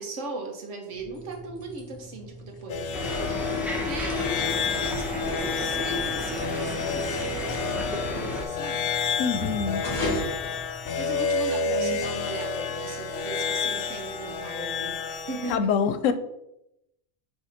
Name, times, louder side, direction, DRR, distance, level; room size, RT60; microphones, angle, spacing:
voice 1, 0.0-8.9 10.8-15.8, right 3 dB, 70° right, 3 dB, 1.4 m, -38 dB
sound 1, 0.9-11.4, left 1 dB, 35° left, 2.1 m, -38 dB
sound 2, 2.7-15.6, left 5 dB, 60° left, 0.7 m, -30 dB
sound 3, 2.9-8.4, left 2 dB, ahead, 0.9 m, -32 dB
voice 2, 9.2-9.9 11.7-12.0 15.5-16.1, left 6 dB, 85° left, 10 dB, 1.0 m, -25 dB
5.9 x 3.4 x 5.7 m, 0.85 s
omnidirectional pair, 1.3 m